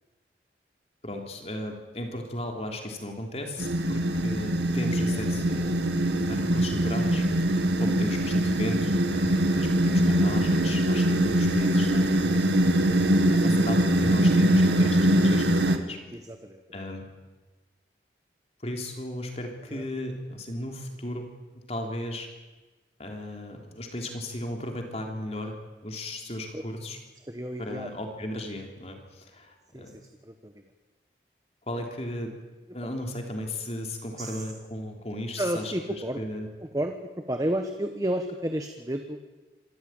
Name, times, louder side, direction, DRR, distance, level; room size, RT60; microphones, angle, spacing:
voice 1, 1.0-12.5 13.3-16.0 16.7-17.1 18.6-22.3 23.0-25.6 25.8-27.0 27.6-29.9 31.7-32.3 32.7-35.7 36.2-36.5, left 1 dB, 35° left, 3 dB, 3.4 m, -36 dB
sound 1, 3.6-15.8, right 1 dB, 80° right, 1.9 m, -23 dB
voice 2, 16.1-16.6 19.7-19.8 26.5-26.6 27.3-27.9 29.7-30.5 34.2-34.4 35.4-36.3 36.6-39.2, right 1 dB, 20° right, 6 dB, 1.2 m, -32 dB
26.0 x 14.0 x 9.1 m, 1.2 s
head